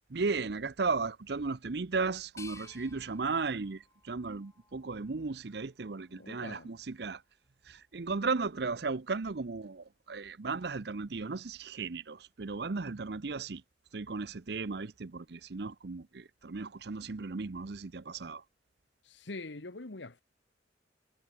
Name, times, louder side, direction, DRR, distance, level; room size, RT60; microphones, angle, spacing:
voice 1, 0.1-7.2 7.7-13.6 13.9-18.4, right 4 dB, 60° right, 0.7 m, -35 dB
sound 1, 2.4-5.3 5.8-6.7, left 4 dB, 15° left, 5.0 m, -56 dB
voice 2, 6.1-6.7 19.0-20.2, left 2 dB, 75° left, 1.4 m, -44 dB
head